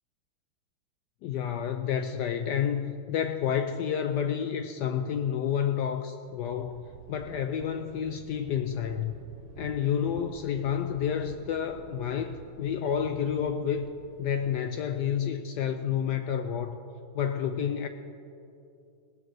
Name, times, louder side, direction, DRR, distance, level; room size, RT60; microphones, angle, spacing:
voice 1, 1.2-9.1 9.6-13.9 14.2-16.8 17.1-17.9, left 8 dB, 80° left, 8 dB, 0.9 m, -30 dB
Thunder, 6.4-14.5, right 9 dB, 85° right, 1.5 m, -50 dB
18.5 x 7.7 x 6.1 m, 2.6 s
omnidirectional pair, 2.3 m